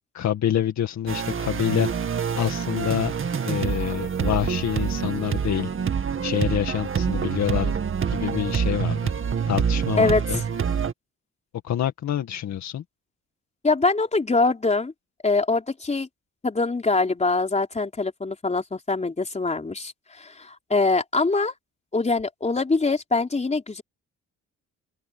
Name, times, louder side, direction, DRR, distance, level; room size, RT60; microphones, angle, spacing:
voice 1, 0.1-1.9 2.4-3.1 3.5-5.7 6.2-7.8 8.1-9.1 9.5-10.4 11.6-12.8, left 10 dB, 65° left, 2.0 m, -26 dB
sound 1, 1.1-10.9, right 7 dB, 45° right, 2.2 m, -26 dB
voice 2, 10.0-10.4 13.6-14.9 15.2-16.1 16.4-21.5 21.9-23.8, left 3 dB, 20° left, 4.0 m, -23 dB
open air
cardioid pair, 90°, 30 cm